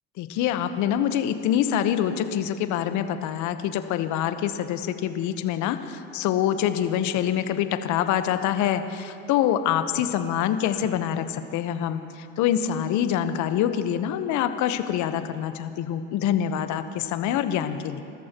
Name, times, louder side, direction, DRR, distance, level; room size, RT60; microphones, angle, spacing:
voice 1, 0.2-18.0, left 10 dB, 60° left, 9 dB, 1.1 m, -25 dB
29.0 x 14.0 x 3.0 m, 2.4 s
hypercardioid pair, 75°, 33 cm